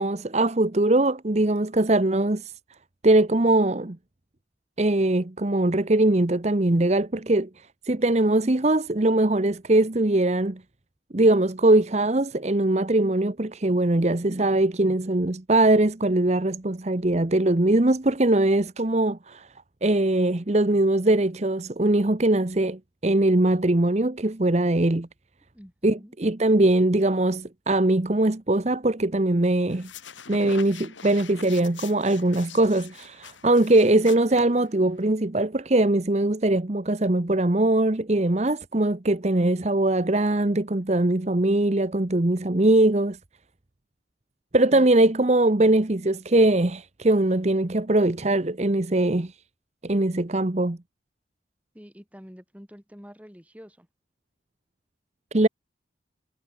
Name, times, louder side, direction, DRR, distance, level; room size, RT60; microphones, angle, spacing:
voice 1, 0.0-2.5 3.0-4.0 4.8-7.5 7.8-10.6 11.1-19.5 19.8-25.1 25.8-29.9 30.3-43.2 44.5-49.3 49.8-50.8 55.3-55.5, right 2 dB, 35° right, 0.9 m, -21 dB
voice 2, 25.5-26.1 44.6-45.1 51.7-53.9, equal, 5° right, 6.7 m, -47 dB
sound 1, 29.7-35.1, left 6 dB, 90° left, 3.8 m, -44 dB
head